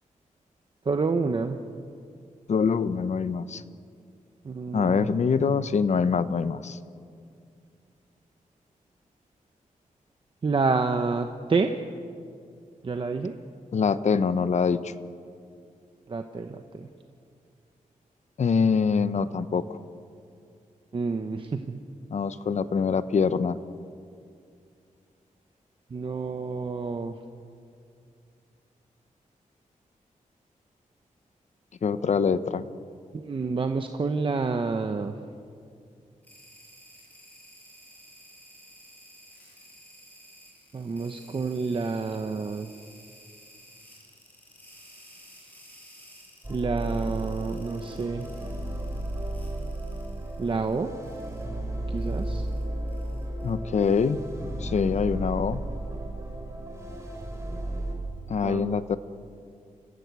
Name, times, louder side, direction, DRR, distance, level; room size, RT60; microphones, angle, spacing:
voice 1, 0.8-1.6 4.4-5.1 10.4-11.9 12.8-13.4 16.1-16.9 20.9-21.8 25.9-27.2 33.1-35.1 40.7-42.7 46.5-48.3 50.4-50.9 51.9-52.5 58.4-58.8, right 4 dB, 40° right, 6 dB, 0.9 m, -28 dB
voice 2, 2.5-3.6 4.7-6.8 13.7-14.9 18.4-19.8 22.1-23.6 31.8-32.7 53.4-54.2 54.6-55.6 58.3-59.0, left 5 dB, 55° left, 13 dB, 0.9 m, -24 dB
sound 1, 36.2-50.7 51.0-51.4 52.0-53.5, equal, 10° left, 7.7 m, -53 dB
sound 2, 46.4-57.9, right 1 dB, 20° right, 4.2 m, -34 dB
29.0 x 15.0 x 8.2 m, 2.3 s
wide cardioid pair, 150°, 14 cm